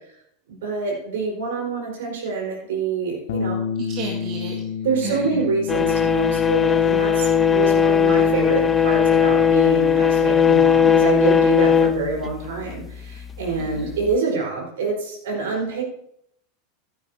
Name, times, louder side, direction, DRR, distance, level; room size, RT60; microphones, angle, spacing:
voice 1, 0.5-3.6 4.8-15.8, right 4 dB, 65° right, -1 dB, 4.6 m, -26 dB
Bass guitar, 3.3-9.5, left 7 dB, 60° left, 0.8 m, -32 dB
voice 2, 3.9-4.6 5.0-5.4 13.6-13.9, right 5 dB, 45° right, -1 dB, 1.9 m, -32 dB
sound 1, 5.7-12.8 14.0-14.1, left 7 dB, 20° left, 0.8 m, -18 dB
15.5 x 11.5 x 2.8 m, 0.73 s
figure-of-eight pair, 85°, 0 cm